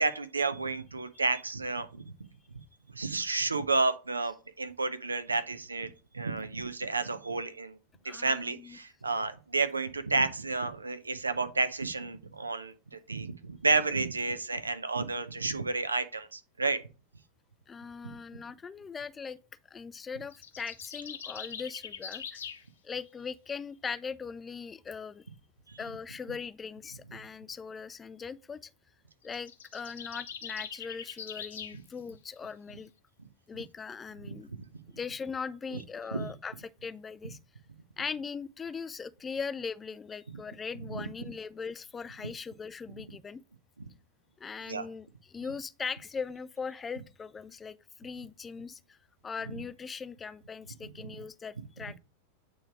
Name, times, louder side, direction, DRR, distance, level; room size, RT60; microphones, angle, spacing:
voice 1, 0.0-2.1 2.9-7.8 8.0-16.8 25.7-25.8 34.2-34.4 36.1-36.3 40.9-41.0 44.7-44.9, right 3 dB, 80° right, 0.7 m, -31 dB
voice 2, 8.1-8.8 17.7-19.4 19.7-22.4 22.8-25.3 25.8-28.7 29.2-32.9 33.5-34.5 34.9-37.4 38.0-43.4 44.4-49.0 49.2-52.0, left 5 dB, 15° left, 0.3 m, -40 dB
sound 1, 20.3-22.6 29.2-31.8, left 7 dB, 65° left, 0.8 m, -42 dB
8.6 x 3.1 x 4.7 m
figure-of-eight pair, 90°, 0 cm